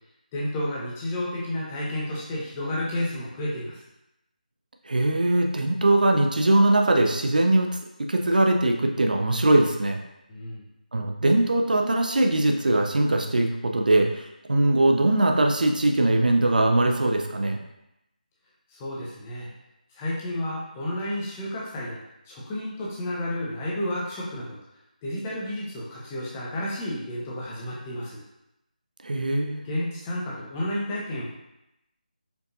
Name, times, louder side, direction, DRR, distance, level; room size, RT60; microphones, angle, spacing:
voice 1, 0.3-3.8 10.3-10.6 18.7-19.5 19.9-22.0 22.3-24.6 25.0-28.2 29.6-31.3, left 1 dB, 15° left, -5 dB, 0.5 m, -31 dB
voice 2, 4.9-7.8 8.1-10.0 10.9-17.6 29.0-29.6, right 2 dB, 65° right, 3 dB, 0.5 m, -21 dB
4.5 x 2.6 x 2.5 m, 0.88 s
figure-of-eight pair, 160°, 5 cm